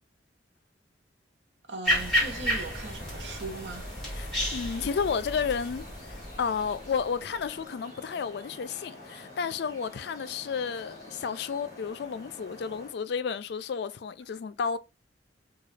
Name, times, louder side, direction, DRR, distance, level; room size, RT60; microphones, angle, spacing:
voice 1, 1.7-3.8, right 3 dB, 90° right, 0.8 m, -39 dB
sound 1, 1.8-7.4, equal, 5° left, 1.8 m, -32 dB
sound 2, 1.9-12.9, left 2 dB, 20° left, 1.8 m, -48 dB
voice 2, 4.1-14.8, left 6 dB, 65° left, 0.4 m, -32 dB
3.9 x 2.3 x 3.2 m
head